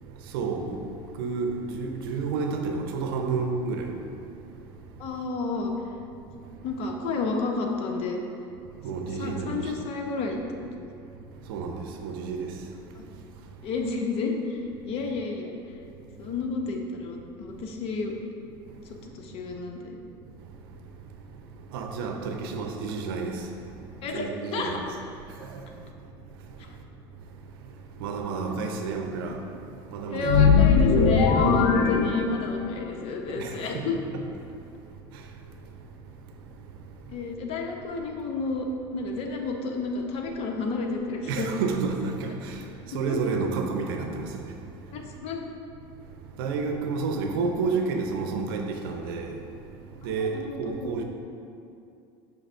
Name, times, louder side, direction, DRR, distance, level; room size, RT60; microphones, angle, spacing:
voice 1, 0.0-5.1 6.4-6.6 8.7-9.7 11.4-13.2 13.4-13.6 16.2-16.3 17.5-17.6 18.7-19.1 20.4-24.8 25.3-26.9 27.3-30.5 31.6-31.9 33.4-33.9 34.1-34.2 34.5-35.9 36.3-37.1 41.3-45.1 45.9-51.0, right 4 dB, 90° right, 0.6 m, -32 dB
voice 2, 5.0-5.7 6.6-8.2 9.1-10.4 10.7-10.9 13.6-15.5 16.2-18.2 18.9-20.0 24.0-24.8 30.1-34.0 37.1-38.7 38.9-41.5 42.0-42.2 42.9-43.2 44.9-45.5 50.0-50.9, left 4 dB, 55° left, 0.8 m, -30 dB
sound 1, 30.2-32.8, left 5 dB, 85° left, 0.5 m, -20 dB
5.7 x 3.3 x 5.5 m
supercardioid pair, 110°, 12 cm